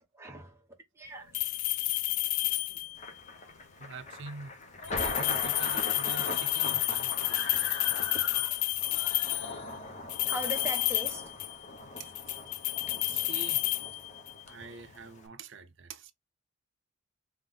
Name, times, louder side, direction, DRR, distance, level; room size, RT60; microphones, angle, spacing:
voice 1, 0.1-0.7 0.9-1.3 10.3-11.4, right 1 dB, 10° right, 0.9 m, -39 dB
sound 1, 1.3-3.1 4.8-9.6 10.1-11.7 12.0-14.4, left 17 dB, 85° left, 0.3 m, -30 dB
Screaming, 1.9-2.8 3.2-3.3 3.6-3.7 4.0-4.5 4.8-11.6 12.5-12.6, left 2 dB, 60° left, 1.0 m, -43 dB
Thunder, 3.0-15.3, left 2 dB, 35° left, 0.7 m, -41 dB
voice 2, 3.8-4.6 5.0-7.4 12.0-12.1 13.0-13.6 14.5-16.1, right 4 dB, 60° right, 0.6 m, -45 dB
3.5 x 3.0 x 3.7 m
head